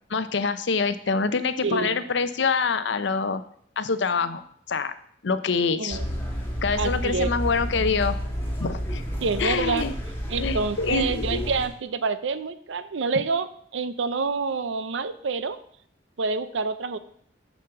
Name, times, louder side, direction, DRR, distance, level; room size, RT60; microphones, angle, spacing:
voice 1, 0.1-3.4 3.8-4.4 4.7-4.9 5.2-6.0 6.6-8.2 8.6-9.0 9.4-9.9 10.4-11.5, left 4 dB, 70° left, 12 dB, 0.6 m, -25 dB
voice 2, 1.6-2.0 5.8-6.1 6.8-7.3 9.2-9.9 10.3-15.6 16.2-17.0, right 4 dB, 80° right, 13 dB, 0.6 m, -27 dB
sound 1, 5.9-11.7, equal, 15° left, 1.7 m, -30 dB
6.8 x 5.1 x 6.9 m, 0.62 s
head